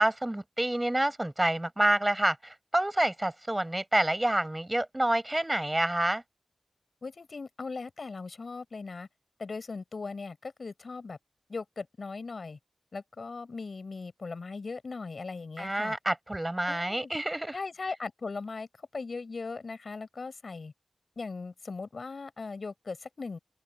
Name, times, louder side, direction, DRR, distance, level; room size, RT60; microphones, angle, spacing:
voice 1, 0.0-6.2 15.6-17.6, right 1 dB, 20° right, 5.4 m, -28 dB
voice 2, 7.0-9.1 9.4-11.2 11.5-12.6 12.9-16.0 16.7-17.1 17.5-18.7 18.9-20.7 21.2-23.4, left 4 dB, 65° left, 5.9 m, -39 dB
open air
wide cardioid pair, 65°, 0 cm